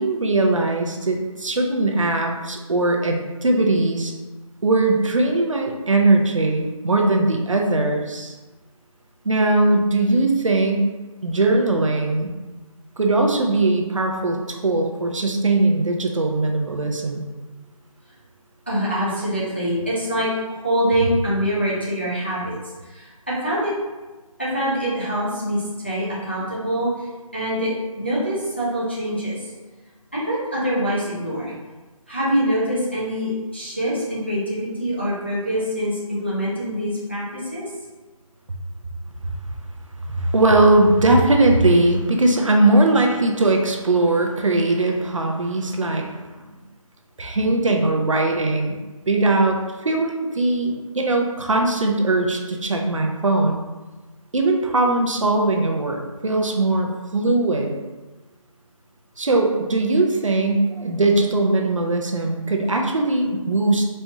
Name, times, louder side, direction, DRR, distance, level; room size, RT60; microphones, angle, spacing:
voice 1, 0.0-4.1 4.6-8.3 9.2-10.9 11.2-12.3 13.0-17.2 40.1-46.2 47.2-48.8 49.1-53.7 54.3-57.7 59.2-63.9, right 2 dB, 65° right, 2 dB, 0.6 m, -20 dB
voice 2, 18.7-20.3 20.6-22.6 22.9-23.7 24.4-27.1 27.3-27.7 28.0-29.4 30.1-31.5 32.1-37.6, equal, 20° left, -7 dB, 0.5 m, -24 dB
4.2 x 2.8 x 2.3 m, 1.2 s
figure-of-eight pair, 175°, 18 cm